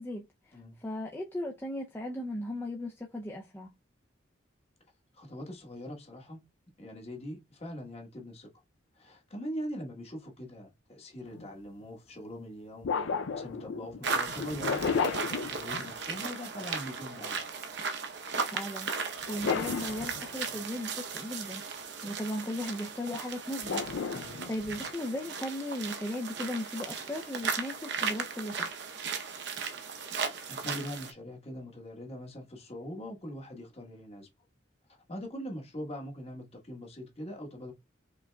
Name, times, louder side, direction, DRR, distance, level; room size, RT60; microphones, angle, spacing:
voice 1, 0.0-3.7 18.4-21.6 22.0-23.9 24.1-28.8, left 1 dB, 10° left, 0.4 m, -37 dB
voice 2, 5.1-6.4 6.8-8.5 8.9-17.6 24.1-24.4 30.5-34.3 35.1-37.7, equal, 35° left, 1.2 m, -42 dB
sound 1, 11.3-11.5 12.8-16.2 19.2-20.6 23.6-24.9, left 5 dB, 80° left, 0.4 m, -33 dB
sound 2, 14.0-31.1, right 5 dB, 60° right, 0.8 m, -36 dB
5.2 x 3.5 x 2.2 m
head